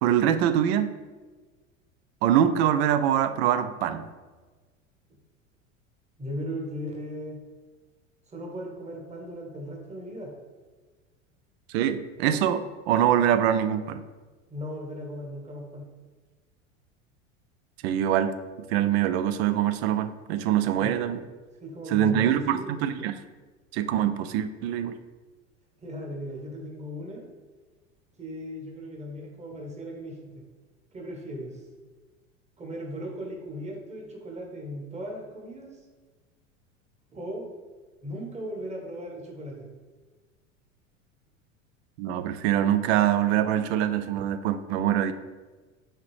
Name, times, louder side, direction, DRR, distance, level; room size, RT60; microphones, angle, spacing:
voice 1, 0.0-0.9 2.2-4.1 11.7-14.0 17.8-18.3 18.7-21.2 21.9-23.1 23.7-25.0 42.0-45.1, right 10 dB, 55° right, 11 dB, 0.5 m, -24 dB
voice 2, 6.2-7.4 8.3-10.3 14.5-15.9 20.8-21.0 21.6-22.7 25.8-27.2 28.2-30.4 30.9-31.6 32.6-35.8 37.1-37.5 38.0-39.7, equal, 15° right, 0 dB, 1.2 m, -37 dB
5.7 x 2.9 x 3.2 m, 1.3 s
hypercardioid pair, 80°, 39 cm